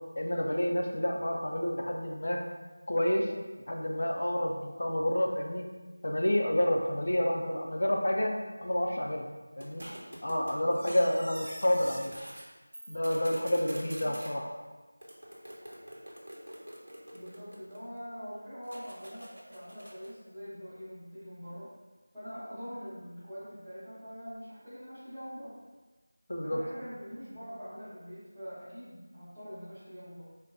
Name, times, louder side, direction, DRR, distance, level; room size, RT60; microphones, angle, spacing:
voice 1, 0.2-2.4 2.9-3.3 3.7-5.7 6.0-9.3 9.6-9.9 10.2-12.1 12.9-14.5 26.3-26.6, left 1 dB, 60° left, 1 dB, 0.4 m, -29 dB
sound 1, 9.6-12.5 12.7-14.3 15.0-18.0 18.6-20.2, equal, 75° right, 0.9 m, -46 dB
voice 2, 17.1-21.7 22.1-25.5 26.4-30.2, equal, 5° right, -26 dB, 0.9 m, -44 dB
4.6 x 2.2 x 2.6 m, 1.2 s
figure-of-eight pair, 175°, 0 cm